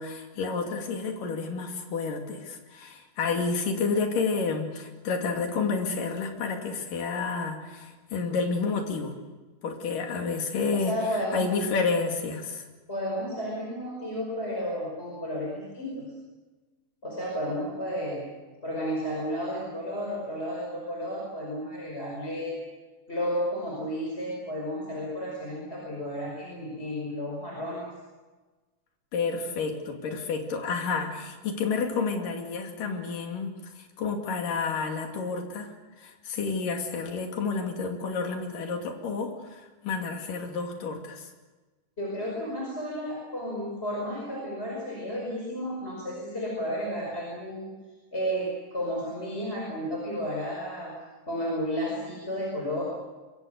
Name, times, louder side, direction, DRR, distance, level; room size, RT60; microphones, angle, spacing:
voice 1, 0.0-9.2 9.6-12.7 29.1-41.3, left 4 dB, 70° left, 3 dB, 4.2 m, -30 dB
voice 2, 10.7-11.4 12.9-16.1 17.0-18.2 18.6-22.6 23.1-27.9 42.0-47.7 48.1-50.9 51.3-52.8, equal, 15° left, -2 dB, 5.3 m, -32 dB
25.5 x 23.5 x 6.6 m, 1.3 s
omnidirectional pair, 4.0 m